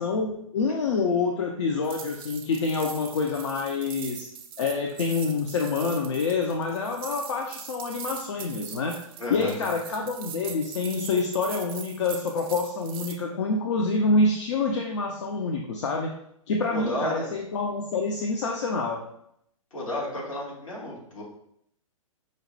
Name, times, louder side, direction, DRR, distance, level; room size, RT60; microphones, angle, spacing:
voice 1, 0.0-4.3 4.6-9.0 9.3-16.1 16.5-19.0, left 3 dB, 55° left, 2 dB, 0.4 m, -27 dB
sound 1, 1.8-13.2, right 8 dB, 45° right, 0.4 m, -41 dB
voice 2, 9.2-9.6 16.7-17.3 19.7-21.2, equal, 75° left, -4 dB, 1.3 m, -32 dB
5.0 x 2.1 x 2.6 m, 0.72 s
figure-of-eight pair, 110°, 17 cm